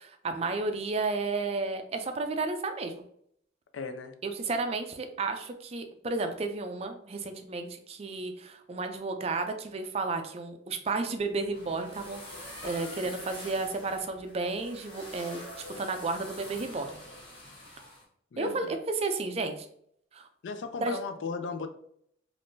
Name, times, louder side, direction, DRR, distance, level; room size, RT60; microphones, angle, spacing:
voice 1, 0.0-2.9 4.2-12.4 12.6-15.4 15.8-16.9 18.4-19.6 20.1-20.3 20.8-21.0, right 3 dB, 35° right, 6 dB, 0.3 m, -32 dB
voice 2, 3.7-4.1 18.3-18.8 20.4-21.7, left 4 dB, 85° left, 8 dB, 0.4 m, -36 dB
sound 1, 11.2-18.0, left 1 dB, 30° left, 1.1 m, -45 dB
3.5 x 2.5 x 2.6 m, 0.68 s
head